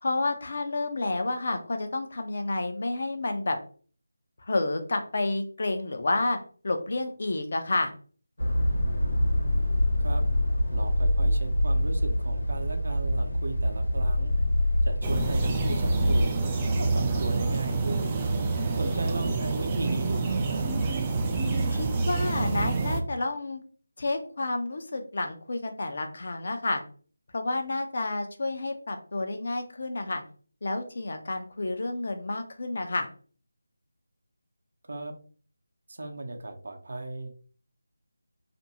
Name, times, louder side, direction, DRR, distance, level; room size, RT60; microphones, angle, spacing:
voice 1, 0.0-3.6 4.5-6.4 6.6-7.9 21.7-23.6 24.0-26.8 27.3-30.2 30.6-33.1, left 2 dB, 55° left, 6 dB, 0.5 m, -30 dB
sound 1, 8.4-16.2, left 1 dB, 90° left, 1.0 m, -25 dB
voice 2, 10.7-14.3 14.8-16.4 16.8-18.1 18.7-20.6 34.9-35.1 35.9-37.3, right 2 dB, 65° right, 4 dB, 0.6 m, -36 dB
sound 2, 15.0-23.0, right 3 dB, 20° right, 0.3 m, -27 dB
2.5 x 2.2 x 2.8 m, 0.42 s
figure-of-eight pair, 170°, 0 cm